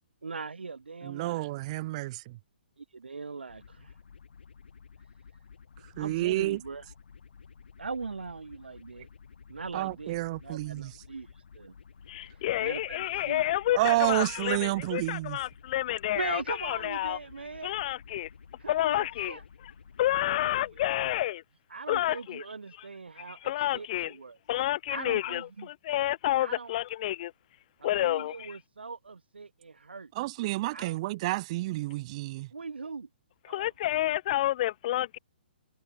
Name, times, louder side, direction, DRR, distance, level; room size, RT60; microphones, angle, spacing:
voice 1, 0.2-1.5 2.8-4.0 6.0-6.9 7.8-9.1 9.5-11.7 12.3-13.4 16.1-17.7 18.6-19.4 20.3-20.8 21.7-24.4 24.9-25.7 26.4-26.7 27.8-30.1 30.7-31.0 32.5-33.1 33.5-33.7, right 4 dB, 85° right, 3.0 m, -40 dB
voice 2, 1.0-2.4 6.0-6.6 9.7-10.9 13.7-15.4 30.2-32.5, right 19 dB, 40° right, 1.3 m, -30 dB
sound 1, 3.5-21.2, left 6 dB, 75° left, 5.5 m, -53 dB
voice 3, 12.1-17.2 17.6-18.3 18.7-19.4 20.0-21.4 21.9-22.4 23.2-24.2 24.5-27.3 27.8-28.6 33.5-35.2, left 14 dB, 45° left, 1.0 m, -29 dB
hypercardioid pair, 140°, 6 cm